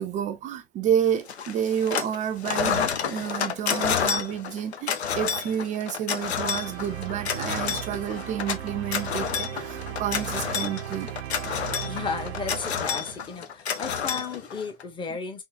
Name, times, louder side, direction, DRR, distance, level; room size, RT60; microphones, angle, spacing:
voice 1, 0.0-11.1, right 9 dB, 25° right, 0.4 m, -29 dB
sound 1, 1.3-2.2 2.4-14.8, left 7 dB, 85° left, 0.6 m, -29 dB
sound 2, 6.4-10.8, left 6 dB, 55° left, 1.4 m, -50 dB
sound 3, 6.4-13.4, right 13 dB, 80° right, 0.5 m, -37 dB
voice 2, 11.8-15.4, left 5 dB, 15° left, 0.8 m, -34 dB
3.7 x 2.6 x 2.4 m
hypercardioid pair, 105°, 32 cm